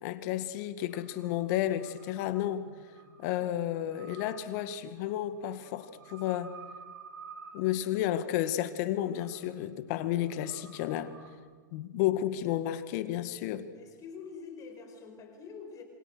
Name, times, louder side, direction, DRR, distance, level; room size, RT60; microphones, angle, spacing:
voice 1, 0.0-2.7 3.2-6.5 7.5-11.1 11.7-13.7, left 12 dB, 50° left, 2.0 m, -32 dB
sound 1, 0.9-11.4, right 5 dB, 80° right, 6.5 m, -53 dB
voice 2, 13.7-15.8, left 5 dB, 30° left, 4.9 m, -45 dB
27.0 x 26.5 x 6.4 m
hypercardioid pair, 120°, 11 cm